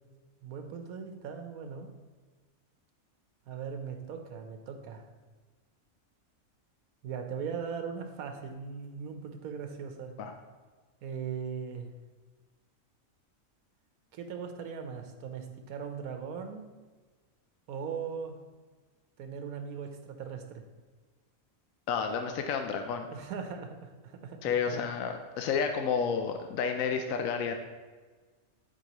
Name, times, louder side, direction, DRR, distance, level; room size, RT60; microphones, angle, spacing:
voice 1, 0.4-1.9 3.5-5.1 7.0-10.1 11.0-11.9 14.1-16.7 17.7-18.4 19.2-20.6 23.1-24.8, right 6 dB, 85° right, 6 dB, 1.2 m, -39 dB
voice 2, 21.9-23.1 24.4-27.6, left 6 dB, 75° left, 5 dB, 1.0 m, -30 dB
11.5 x 4.9 x 3.0 m, 1.4 s
omnidirectional pair, 1.5 m